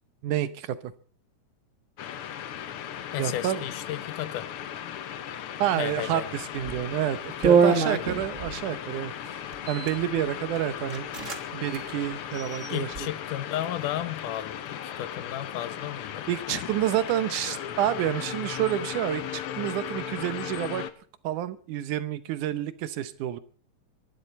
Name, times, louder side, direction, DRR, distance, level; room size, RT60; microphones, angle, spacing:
voice 1, 0.2-0.9 3.2-3.7 5.6-9.4 9.7-11.1 11.5-12.9 16.3-20.8 21.2-23.4, right 12 dB, 80° right, 13 dB, 2.4 m, -29 dB
sound 1, 2.0-20.9, left 9 dB, 65° left, 1.4 m, -37 dB
voice 2, 3.1-4.5 5.8-6.3 7.9-8.2 12.7-16.3, left 12 dB, 85° left, 14 dB, 2.5 m, -33 dB
sound 2, 6.6-6.8 7.4-8.6 9.5-10.0 10.5-10.6 10.9-11.4 11.7-11.8 12.3-13.0, right 6 dB, 40° right, 1.1 m, -24 dB
24.0 x 11.5 x 4.2 m, 0.43 s
omnidirectional pair, 3.6 m